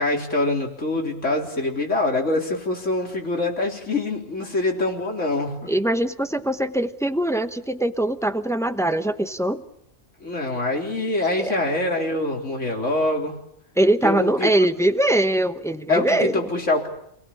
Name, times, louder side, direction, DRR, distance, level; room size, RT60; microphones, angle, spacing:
voice 1, 0.0-5.6 10.2-13.4 14.0-14.7 15.9-16.9, left 2 dB, 80° left, 1 dB, 4.2 m, -24 dB
voice 2, 5.7-9.6 11.4-11.5 13.8-16.4, right 1 dB, 5° left, 9 dB, 1.0 m, -22 dB
28.5 x 19.0 x 8.7 m, 0.78 s
omnidirectional pair, 1.3 m